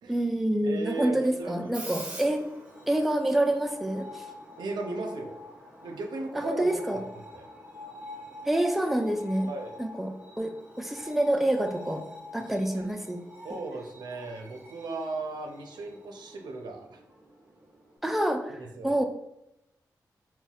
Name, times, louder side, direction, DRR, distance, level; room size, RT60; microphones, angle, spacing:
voice 1, 0.1-2.4 2.9-4.2 6.3-7.0 8.5-9.5 9.8-10.5 10.8-12.0 12.3-13.2 18.0-18.6 18.8-19.0, right 1 dB, 5° right, 4 dB, 0.4 m, -27 dB
voice 2, 0.6-1.6 4.6-5.4 5.8-7.5 9.5-9.7 12.4-12.9 13.4-17.0 18.6-19.0, right 3 dB, 85° right, 2 dB, 0.5 m, -37 dB
Screech, 1.4-18.0, left 1 dB, 20° right, 0.9 m, -46 dB
3.9 x 2.1 x 2.3 m, 0.87 s
cardioid pair, 55°, 7 cm